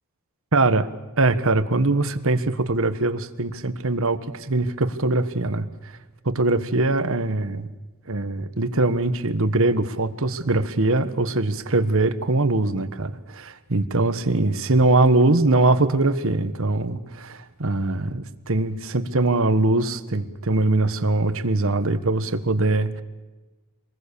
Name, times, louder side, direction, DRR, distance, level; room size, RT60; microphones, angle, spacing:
voice 1, 0.5-0.8 1.2-5.9 6.2-7.7 8.1-23.0, right 2 dB, 65° right, 11 dB, 1.4 m, -22 dB
26.0 x 20.5 x 6.9 m, 1.2 s
head